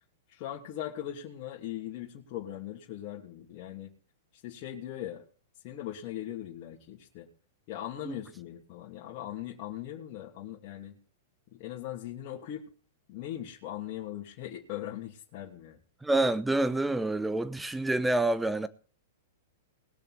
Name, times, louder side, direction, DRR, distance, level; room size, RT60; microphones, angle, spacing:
voice 1, 0.3-3.9 4.4-5.2 5.6-7.3 7.7-11.0 11.5-12.6 13.1-15.8, left 12 dB, 45° left, 2.7 m, -40 dB
voice 2, 16.0-18.7, right 2 dB, 5° right, 0.9 m, -27 dB
20.5 x 6.9 x 4.2 m
hypercardioid pair, 130°, 0 cm